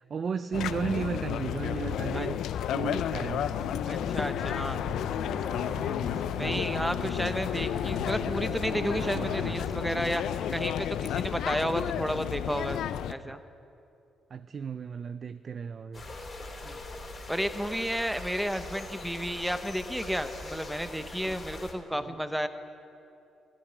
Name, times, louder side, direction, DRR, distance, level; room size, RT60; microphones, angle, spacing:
voice 1, 0.1-2.4 2.7-3.5 6.1-6.7 9.9-10.1 13.3-13.4 14.3-16.1, right 6 dB, 45° right, 13 dB, 0.4 m, -34 dB
sound 1, 0.5-13.1, left 10 dB, 75° left, 0.4 m, -32 dB
sound 2, 2.8-9.6, right 3 dB, 65° right, 1.9 m, -41 dB
voice 2, 3.9-4.8 6.4-10.2 10.5-12.8 13.1-13.4 16.6-16.8 17.3-22.5, equal, ahead, 10 dB, 0.8 m, -32 dB
sound 3, 15.9-21.7, left 2 dB, 35° left, 2.7 m, -42 dB
13.5 x 8.3 x 9.7 m, 2.7 s
cardioid pair, 90°, 0 cm